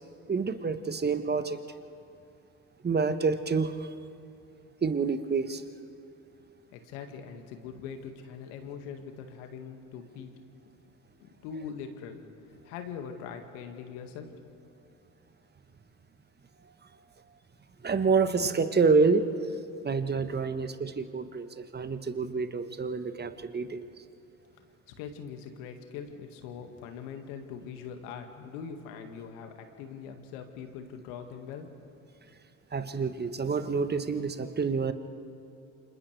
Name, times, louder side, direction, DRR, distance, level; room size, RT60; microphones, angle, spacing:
voice 1, 0.3-1.6 2.8-3.9 4.8-5.6 17.8-19.4 19.8-23.9 32.7-34.9, right 4 dB, 25° right, 10 dB, 1.3 m, -27 dB
voice 2, 6.7-10.3 11.2-12.2 12.6-14.3 24.9-31.7, left 7 dB, 70° left, 5 dB, 2.1 m, -42 dB
29.5 x 26.5 x 3.4 m, 2.8 s
hypercardioid pair, 65°, 42 cm